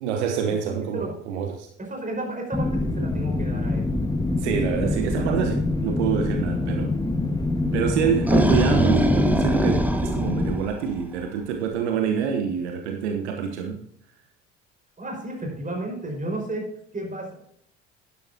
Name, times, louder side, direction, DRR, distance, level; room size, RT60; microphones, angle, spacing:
voice 1, 0.0-1.7 4.4-6.9 7.7-13.8, right 7 dB, 70° right, 5 dB, 1.1 m, -27 dB
voice 2, 1.8-3.9 4.8-5.0 15.0-17.3, right 1 dB, 20° right, 1 dB, 5.1 m, -32 dB
sound 1, 2.5-10.5, left 2 dB, 10° left, 1.5 m, -25 dB
sound 2, 7.9-11.2, right 1 dB, 5° right, 1.2 m, -22 dB
11.5 x 11.0 x 2.8 m, 0.67 s
figure-of-eight pair, 55°, 35 cm